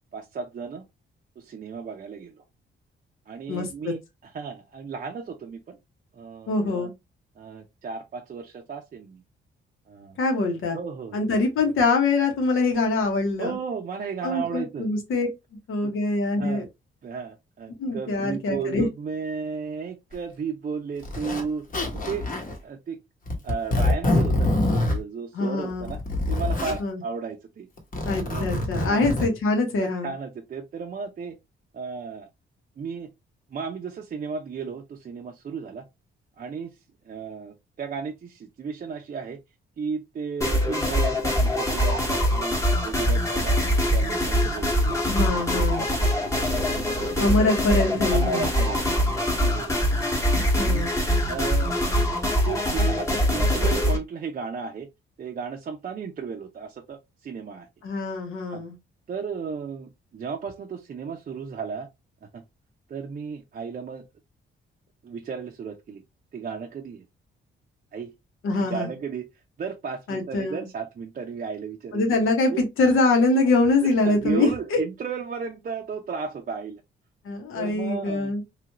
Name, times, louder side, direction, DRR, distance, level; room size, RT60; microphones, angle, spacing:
voice 1, 0.1-0.8 1.4-2.4 3.3-5.8 6.1-6.9 7.4-9.2 9.9-10.2 10.7-11.4 13.4-14.9 15.8-15.9 16.4-16.6 17.0-21.7 21.9-22.2 22.6-23.0 23.4-26.0 26.3-27.7 28.2-28.5 28.8-29.1 29.8-31.4 31.7-32.3 32.8-33.1 33.5-35.8 36.4-36.8 37.0-39.4 39.8-42.5 42.8-43.6 43.9-45.9 46.2-47.4 48.1-49.9 50.5-50.9 51.3-51.8 52.4-54.9 55.2-57.7 58.5-58.6 59.1-61.9 62.3-62.4 62.9-64.0 65.0-66.0 66.3-67.0 67.9-68.1 68.6-69.3 69.6-72.0 72.5-72.6 74.0-76.8 77.5-78.3, right 5 dB, 40° right, 0.5 m, -34 dB
voice 2, 3.5-3.9 6.5-6.9 10.2-10.8 11.1-13.5 14.2-15.3 15.7-16.6 17.8-18.9 25.3-25.9 26.8-27.0 28.1-30.1 45.1-45.8 47.2-48.5 50.6-50.9 57.8-58.7 68.4-68.9 70.1-70.7 71.9-74.8 77.2-78.4, left 3 dB, 80° left, 1.2 m, -24 dB
Zipper (clothing), 20.1-20.2 21.0-21.4 21.7-22.6 23.3-25.0 25.7-26.8 27.8-29.3, left 1 dB, 40° left, 1.0 m, -25 dB
sound 1, 40.4-54.0, equal, 15° left, 1.0 m, -23 dB
3.1 x 2.5 x 2.9 m
cardioid pair, 105°, 21 cm